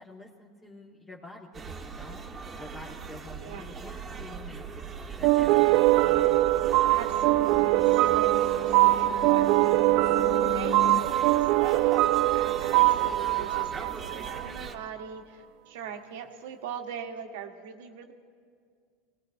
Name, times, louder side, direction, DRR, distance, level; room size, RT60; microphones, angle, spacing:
voice 1, 0.0-2.2 2.6-4.6 4.9-6.5 15.8-16.0, left 2 dB, 20° left, -3 dB, 1.5 m, -48 dB
sound 1, 1.5-14.7, right 5 dB, 25° right, 1.2 m, -40 dB
sound 2, 5.2-14.5, right 17 dB, 60° right, 0.4 m, -23 dB
sound 3, 5.6-5.8 6.7-11.0, left 9 dB, 55° left, 0.4 m, -39 dB
voice 2, 6.9-10.0 10.4-18.1, right 8 dB, 75° right, 6 dB, 1.2 m, -41 dB
21.0 x 18.5 x 2.6 m, 2.1 s
supercardioid pair, 115°, 0 cm